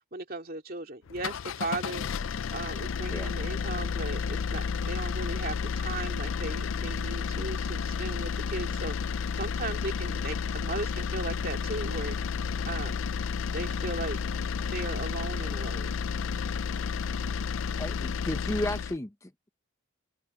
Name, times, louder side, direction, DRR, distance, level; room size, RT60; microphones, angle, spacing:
voice 1, 0.1-2.0 2.5-12.2 12.7-13.0 13.5-14.2 14.6-15.9, right 2 dB, 45° right, 2.7 m, -37 dB
sound 1, 1.1-19.0, left 6 dB, 65° left, 0.4 m, -32 dB
voice 2, 17.8-19.5, left 1 dB, 15° left, 0.7 m, -34 dB
head